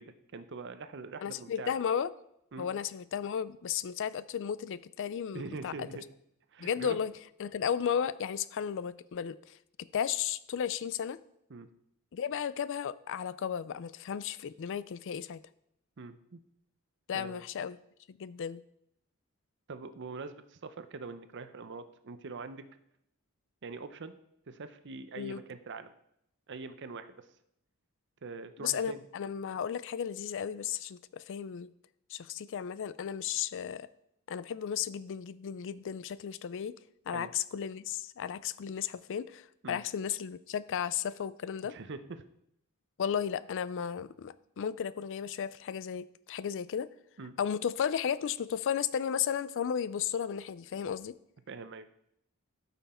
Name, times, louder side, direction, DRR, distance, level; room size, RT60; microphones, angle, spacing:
voice 1, 0.0-1.7 2.5-2.7 5.3-6.0 6.5-7.0 11.5-11.7 16.0-16.4 17.1-17.4 19.7-22.7 23.6-24.1 24.5-25.9 26.5-27.3 28.2-29.0 37.1-37.3 39.6-39.8 41.7-42.2 47.2-47.4 51.5-51.9, right 4 dB, 50° right, 11 dB, 0.6 m, -43 dB
voice 2, 1.2-2.1 2.6-5.9 6.6-7.1 7.4-9.6 9.9-11.2 12.1-15.4 17.1-17.8 18.1-18.6 25.2-25.4 28.6-31.7 32.1-33.9 34.3-36.8 37.1-41.8 43.0-46.9 47.4-51.1, left 8 dB, 55° left, 17 dB, 0.4 m, -34 dB
12.5 x 5.7 x 4.3 m, 0.76 s
head